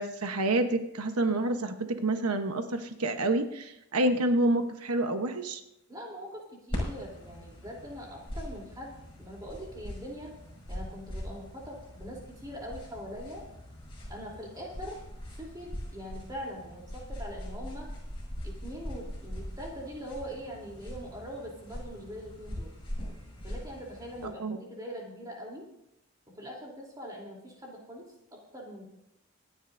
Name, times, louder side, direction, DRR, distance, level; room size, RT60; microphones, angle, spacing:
voice 1, 0.0-5.6 24.2-24.6, right 2 dB, 90° right, 7 dB, 1.0 m, -28 dB
voice 2, 5.9-10.3 10.7-13.4 14.1-15.0 15.4-17.9 18.4-22.7 23.4-25.6 26.3-28.1 28.5-28.9, equal, 15° right, -2 dB, 3.3 m, -42 dB
sound 1, 6.7-24.3, equal, 25° left, 5.8 m, -41 dB
25.0 x 10.0 x 2.6 m, 0.82 s
head